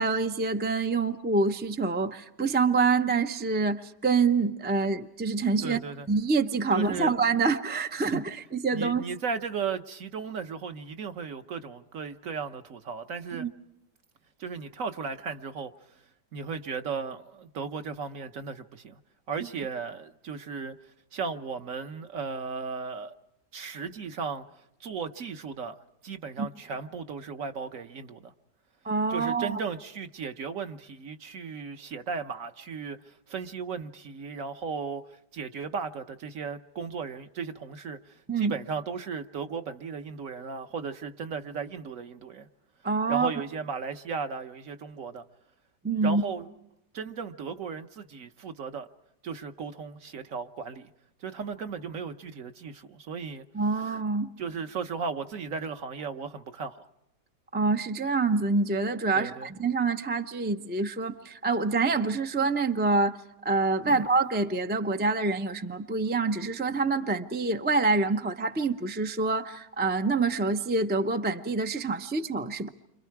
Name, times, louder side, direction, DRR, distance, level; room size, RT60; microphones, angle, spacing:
voice 1, 0.0-5.8 6.1-9.0 13.3-13.5 26.4-26.5 28.8-29.6 38.3-38.5 42.8-43.3 45.8-46.2 53.5-54.3 57.5-63.2 63.4-72.7, right 4 dB, 15° right, 0.3 m, -26 dB
voice 2, 5.6-6.1 6.7-7.1 8.1-8.2 8.7-13.5 14.4-15.7 16.3-19.0 19.3-20.7 21.1-23.1 23.5-24.5 24.8-28.3 29.1-42.5 43.1-45.2 46.0-46.5 46.9-48.9 49.2-50.9 51.2-53.4 54.4-56.9 59.1-59.5 63.9-64.0, right 5 dB, 55° right, 1.3 m, -36 dB
29.5 x 26.0 x 4.7 m
omnidirectional pair, 1.8 m